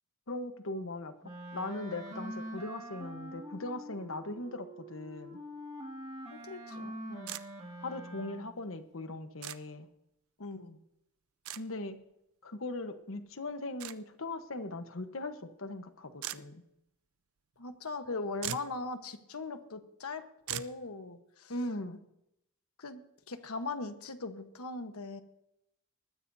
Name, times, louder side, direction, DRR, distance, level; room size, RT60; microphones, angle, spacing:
voice 1, 0.3-5.4 7.8-9.9 11.6-12.0 12.4-16.6 21.5-22.0, left 2 dB, 65° left, 8 dB, 1.2 m, -39 dB
Wind instrument woodwind instrument, 1.2-8.7, equal, 30° right, 2.3 m, -45 dB
voice 2, 6.3-7.4 10.4-10.8 17.6-21.5 22.8-25.2, left 3 dB, 85° left, 8 dB, 1.3 m, -40 dB
sound 1, 7.3-7.4 9.4-9.6 11.5-11.6 13.8-14.0 16.2-16.4 18.1-18.2 18.4-18.8 20.5-20.7, right 12 dB, 80° right, 0.6 m, -38 dB
20.0 x 14.5 x 2.8 m, 0.81 s
head